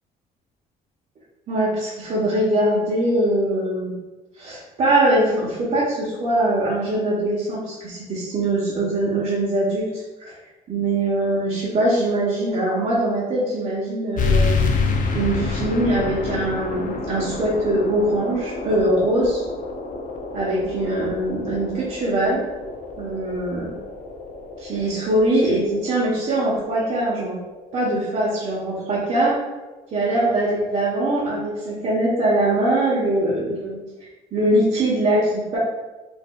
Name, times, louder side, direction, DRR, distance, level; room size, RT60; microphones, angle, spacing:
voice 1, 1.5-3.9 4.4-10.4 10.7-14.7 15.1-19.4 20.3-22.4 23.0-23.7 24.6-27.4 27.7-29.3 29.9-33.8 34.3-35.6, right 1 dB, 45° right, -8 dB, 1.0 m, -22 dB
sound 1, 14.2-29.3, left 4 dB, 50° left, 0.5 m, -28 dB
4.4 x 2.7 x 2.3 m, 1.1 s
cardioid pair, 110°, 17 cm